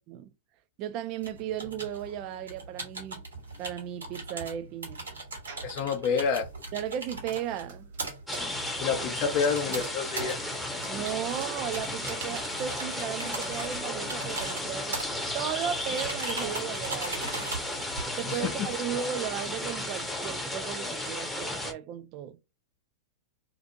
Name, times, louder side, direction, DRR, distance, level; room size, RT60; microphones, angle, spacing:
voice 1, 0.8-3.2 3.6-5.0 6.7-7.9 10.9-15.0 15.3-17.4 18.2-22.4, right 10 dB, 45° right, 0.3 m, -35 dB
sound 1, 1.2-18.7, right 3 dB, 85° right, 1.2 m, -40 dB
sound 2, 5.5-5.8 6.4-13.8, right 5 dB, 65° right, 1.1 m, -48 dB
voice 2, 5.6-6.5 8.8-10.4 18.3-18.4, left 6 dB, 45° left, 0.5 m, -28 dB
sound 3, 8.3-21.7, left 1 dB, 5° left, 0.7 m, -34 dB
2.5 x 2.4 x 2.7 m
hypercardioid pair, 105°, 0 cm